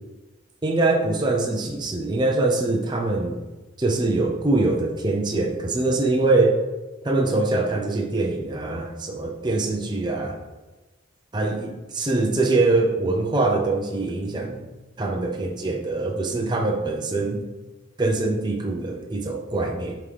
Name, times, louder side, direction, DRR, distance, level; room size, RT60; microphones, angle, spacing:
voice 1, 0.6-3.4 3.8-6.6 7.0-10.4 11.3-14.6 15.0-17.4 18.0-20.0, right 2 dB, 20° right, 1 dB, 0.6 m, -23 dB
7.8 x 3.8 x 3.4 m, 1.2 s
head